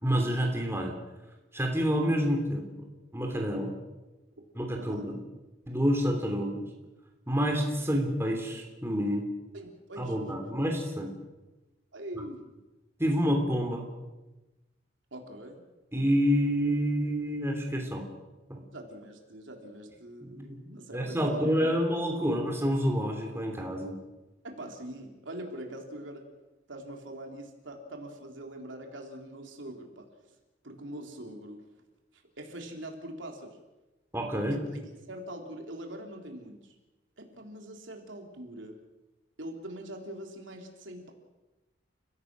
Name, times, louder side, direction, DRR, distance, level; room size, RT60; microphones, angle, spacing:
voice 1, 0.0-0.9 1.5-2.7 3.1-3.7 4.5-5.2 5.7-6.6 7.3-9.2 10.0-11.1 13.0-13.8 15.9-18.1 18.5-18.6 20.2-20.6 20.9-23.9 34.1-34.6, equal, 15° right, 2 dB, 3.1 m, -28 dB
voice 2, 4.8-5.1 9.5-10.3 11.9-12.4 15.1-15.7 18.7-21.7 24.4-26.3 26.7-30.1 30.6-31.6 32.1-33.6 34.5-36.7 37.2-38.8 39.4-41.1, right 1 dB, 75° right, 2 dB, 3.6 m, -43 dB
30.0 x 16.5 x 6.3 m, 1.1 s
head